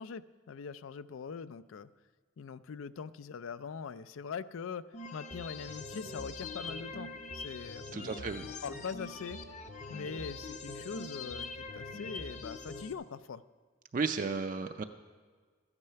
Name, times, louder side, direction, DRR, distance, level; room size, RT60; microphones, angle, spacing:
voice 1, 0.0-1.9 2.4-9.4 9.9-13.4, left 6 dB, 80° left, 15 dB, 0.4 m, -42 dB
sound 1, 4.9-12.9, left 3 dB, 35° left, 0.6 m, -43 dB
voice 2, 7.9-8.5 13.9-14.8, right 4 dB, 40° right, 6 dB, 0.4 m, -33 dB
13.0 x 9.7 x 5.7 m, 1.6 s
head